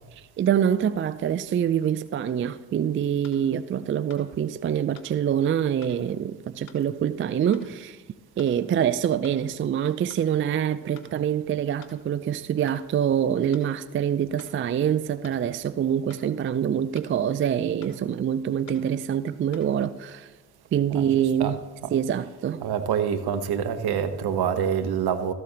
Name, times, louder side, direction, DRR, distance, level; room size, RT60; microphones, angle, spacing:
voice 1, 0.2-8.0 8.4-20.3 20.7-21.6 21.9-22.6, right 9 dB, 30° right, 0.4 m, -25 dB
sound 1, 3.2-3.4 4.1-4.3 4.9-5.1 5.8-6.0 6.7-6.8 7.5-7.7 8.4-8.5 9.2-9.4 10.1-10.3 11.0-11.1 11.8-12.0 12.7-12.8 13.5-13.7 14.4-14.5 15.2-15.4 16.1-16.3 16.9-17.1 17.8-18.0 18.7-18.8 19.5-19.7, left 7 dB, 90° left, 1.2 m, -50 dB
voice 2, 22.6-25.3, right 8 dB, 60° right, 1.1 m, -26 dB
13.5 x 7.7 x 4.0 m
hypercardioid pair, 50°, 43 cm